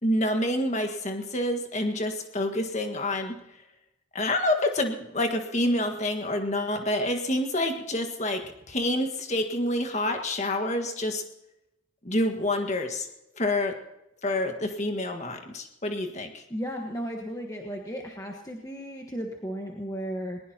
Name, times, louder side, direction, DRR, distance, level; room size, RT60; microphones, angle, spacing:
voice 1, 0.0-3.3 4.1-11.2 12.0-13.1 13.4-13.8 14.2-16.4, left 1 dB, 35° left, 5 dB, 1.7 m, -27 dB
voice 2, 16.5-20.4, equal, 15° left, 1 dB, 1.3 m, -35 dB
20.5 x 20.5 x 2.9 m, 0.91 s
head